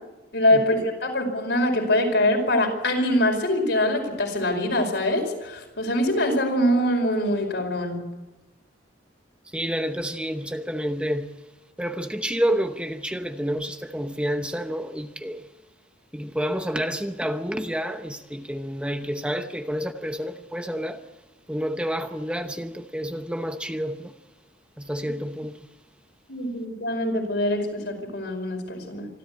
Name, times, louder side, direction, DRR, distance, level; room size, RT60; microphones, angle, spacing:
voice 1, 0.3-8.0 26.3-29.1, left 1 dB, 65° left, 5.1 m, -23 dB
voice 2, 9.4-11.3 11.8-15.5 16.1-21.0 21.5-24.1 24.8-25.7, equal, 5° right, 0.8 m, -29 dB
25.5 x 13.5 x 8.5 m
head